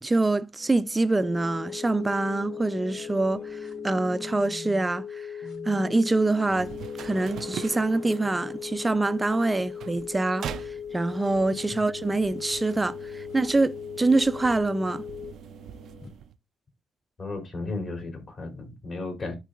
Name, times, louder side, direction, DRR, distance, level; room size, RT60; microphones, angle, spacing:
voice 1, 0.0-5.3 5.7-6.7 7.0-10.5 10.9-15.0, right 2 dB, 20° right, 0.5 m, -25 dB
sound 1, 0.6-4.9 5.4-11.3 12.4-12.5 12.8-16.1, left 1 dB, 80° left, 2.7 m, -47 dB
sound 2, 1.1-15.3, left 7 dB, 60° left, 0.6 m, -38 dB
sound 3, 6.5-16.4, right 9 dB, 70° right, 0.5 m, -43 dB
voice 2, 17.2-19.3, left 3 dB, 45° left, 3.5 m, -34 dB
11.5 x 4.0 x 2.4 m
cardioid pair, 90°, 0 cm